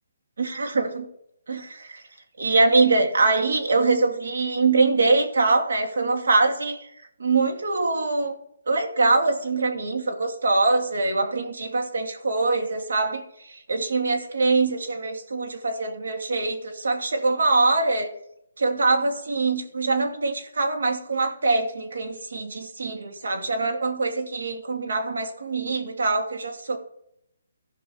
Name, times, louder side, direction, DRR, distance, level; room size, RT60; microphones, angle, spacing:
voice 1, 0.4-1.1 1.5-2.0 2.4-6.8 7.2-8.3 8.7-13.2 13.5-18.1 18.6-26.8, right 3 dB, 75° right, 4 dB, 2.3 m, -23 dB
15.5 x 5.3 x 4.5 m, 0.75 s
hypercardioid pair, 165°, 0 cm